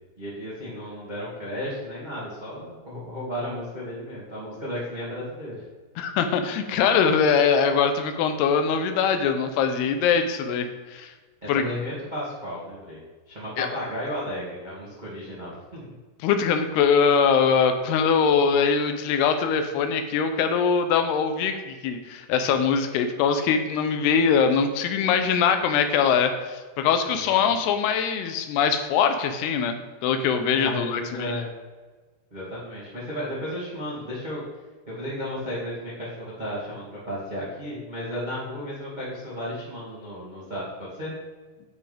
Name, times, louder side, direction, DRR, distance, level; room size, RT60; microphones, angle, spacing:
voice 1, 0.2-5.6 11.4-15.8 27.0-27.5 30.5-31.5 32.3-34.4 34.9-41.1, equal, 20° right, -7 dB, 1.3 m, -34 dB
voice 2, 6.0-11.1 11.5-11.7 13.6-13.7 16.2-29.8 30.0-31.4, left 6 dB, 80° left, 7 dB, 2.8 m, -22 dB
10.0 x 8.2 x 3.5 m, 1.4 s
omnidirectional pair, 4.8 m